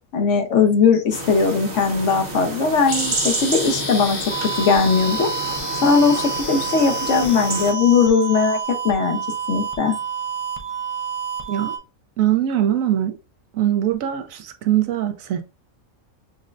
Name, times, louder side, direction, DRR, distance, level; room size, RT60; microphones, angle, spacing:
voice 1, 0.1-4.2 4.6-5.3 5.8-8.6 8.8-9.2 9.5-9.9, left 5 dB, 65° left, 1.0 m, -19 dB
sound 1, 1.1-7.7, right 2 dB, 35° right, 0.9 m, -30 dB
sound 2, 2.9-8.6, left 4 dB, 50° left, 0.8 m, -32 dB
sound 3, 4.3-11.8, right 8 dB, 55° right, 0.3 m, -29 dB
voice 2, 12.2-13.1 13.5-15.4, right 11 dB, 80° right, 1.0 m, -21 dB
6.0 x 2.1 x 2.4 m
omnidirectional pair, 1.4 m